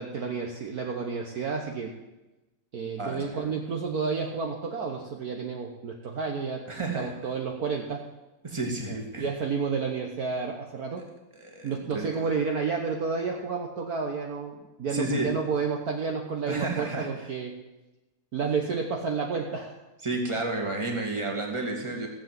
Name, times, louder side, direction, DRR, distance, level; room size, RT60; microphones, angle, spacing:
voice 1, 0.0-1.9 2.7-6.6 6.9-8.1 8.9-11.0 11.6-17.5 18.3-19.8, right 5 dB, 55° right, 1 dB, 1.5 m, -31 dB
voice 2, 3.0-3.5 6.7-7.1 8.4-9.3 11.4-12.1 14.9-15.3 16.5-17.3 20.0-22.1, right 2 dB, 15° right, 1 dB, 2.3 m, -31 dB
16.0 x 7.8 x 7.7 m, 1.0 s
omnidirectional pair, 2.1 m